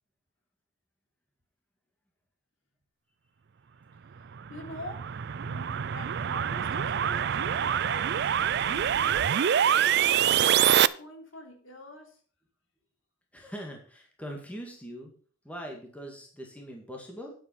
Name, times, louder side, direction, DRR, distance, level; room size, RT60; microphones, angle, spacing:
sound 1, 4.4-10.9, right 9 dB, 50° right, 0.4 m, -25 dB
voice 1, 4.5-5.1 5.4-9.2 9.6-12.2, left 1 dB, 65° left, 2 dB, 3.3 m, -45 dB
voice 2, 13.3-15.1 15.4-17.3, equal, 5° left, 1 dB, 2.1 m, -41 dB
9.6 x 8.6 x 5.6 m, 0.44 s
head